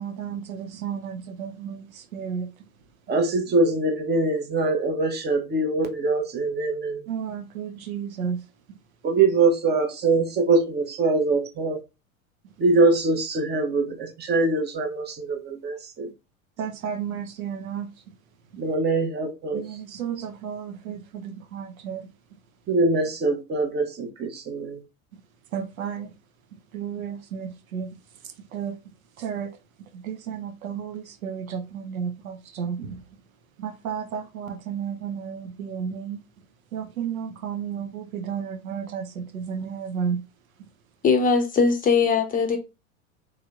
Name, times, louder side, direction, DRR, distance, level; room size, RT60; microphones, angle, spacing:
voice 1, 0.0-2.5 7.1-8.4 16.6-17.9 19.5-22.1 25.5-26.1 26.7-27.9 28.2-28.8 29.2-29.6 29.9-33.0 33.6-36.2 36.7-40.2, right 7 dB, 80° right, 0.7 m, -32 dB
voice 2, 3.1-7.0 9.0-11.8 12.6-16.1 18.6-19.6 22.7-24.8, right 3 dB, 25° right, 0.8 m, -23 dB
voice 3, 41.0-42.6, left 5 dB, 20° left, 0.6 m, -20 dB
3.2 x 2.8 x 2.3 m
hypercardioid pair, 85°, 41 cm